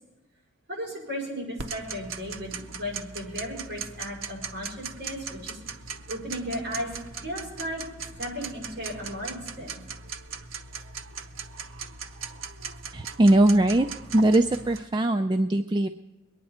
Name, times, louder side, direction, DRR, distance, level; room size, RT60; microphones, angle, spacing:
voice 1, 0.7-5.6 6.1-6.9 7.2-7.8 8.2-9.8, equal, 55° right, -3 dB, 5.6 m, -35 dB
Tick-tock, 1.6-14.8, right 5 dB, 85° right, 0.8 m, -39 dB
voice 2, 12.9-13.9 14.1-15.9, right 1 dB, 25° right, 7 dB, 0.4 m, -21 dB
21.5 x 9.8 x 4.3 m, 1.1 s
head